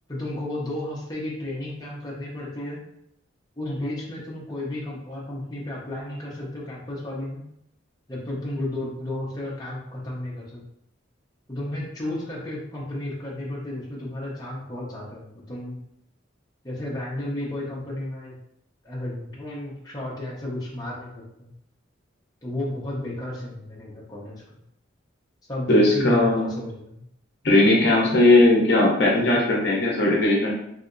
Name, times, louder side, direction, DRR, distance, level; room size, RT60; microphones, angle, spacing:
voice 1, 0.1-2.8 3.6-7.4 8.1-10.6 11.5-15.8 16.6-18.4 18.8-21.5 22.4-24.6 25.5-27.0, left 1 dB, 20° left, -6 dB, 0.7 m, -33 dB
voice 2, 25.7-26.5 27.4-30.5, left 2 dB, 55° left, -3 dB, 0.7 m, -18 dB
3.2 x 2.8 x 2.6 m, 0.77 s
head